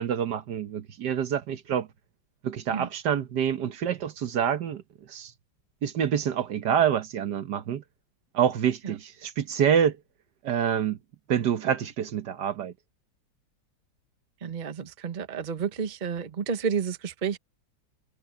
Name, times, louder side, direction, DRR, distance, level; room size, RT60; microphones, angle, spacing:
voice 1, 0.0-1.9 2.4-4.8 5.1-5.3 5.8-7.8 8.3-10.0 10.4-11.0 11.3-12.7, right 8 dB, 70° right, 1.6 m, -26 dB
voice 2, 14.4-17.4, right 6 dB, 30° right, 1.0 m, -31 dB
omnidirectional pair, 1.9 m